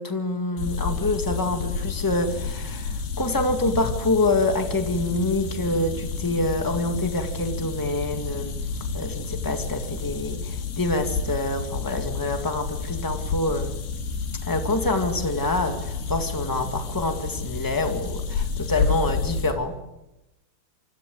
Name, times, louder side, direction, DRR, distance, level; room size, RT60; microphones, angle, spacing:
voice 1, 0.0-8.5 8.9-13.8 14.4-19.7, left 2 dB, 20° left, 5 dB, 0.5 m, -26 dB
sound 1, 0.6-19.5, left 4 dB, 85° left, 4.7 m, -30 dB
27.5 x 25.5 x 7.9 m, 0.99 s
omnidirectional pair, 4.4 m